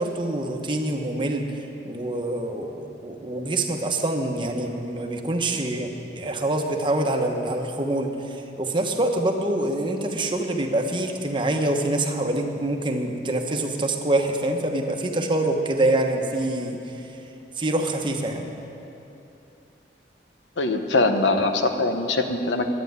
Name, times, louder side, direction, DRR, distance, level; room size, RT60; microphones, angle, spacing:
voice 1, 0.0-1.5 1.8-16.8 17.6-18.4, right 1 dB, 25° right, 3 dB, 1.0 m, -25 dB
voice 2, 20.6-22.7, left 2 dB, 80° left, 6 dB, 1.0 m, -22 dB
11.5 x 9.2 x 9.4 m, 2.9 s
head